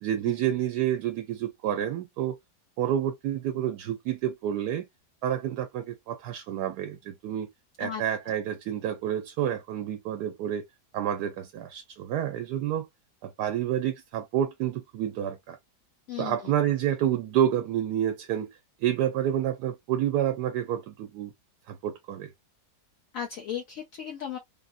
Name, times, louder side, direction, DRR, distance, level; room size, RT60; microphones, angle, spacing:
voice 1, 0.0-2.3 2.8-4.8 5.2-7.5 7.8-10.6 10.9-12.9 13.2-15.6 16.2-18.5 18.8-21.3 21.7-22.3, right 10 dB, 80° right, 1.2 m, -29 dB
voice 2, 23.1-24.4, left 9 dB, 65° left, 1.0 m, -35 dB
3.6 x 2.1 x 2.5 m
omnidirectional pair, 1.8 m